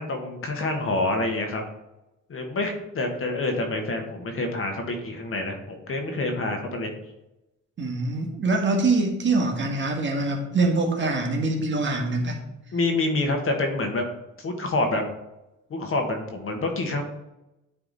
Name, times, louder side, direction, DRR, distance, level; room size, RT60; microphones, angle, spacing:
voice 1, 0.0-1.6 2.3-6.9 11.0-11.1 12.7-14.0 14.4-15.0 15.7-17.0, left 2 dB, 45° left, 4 dB, 1.5 m, -27 dB
voice 2, 7.8-12.4, right 3 dB, 40° right, 1 dB, 1.6 m, -24 dB
9.6 x 3.5 x 4.1 m, 0.93 s
cardioid pair, 90°, 30 cm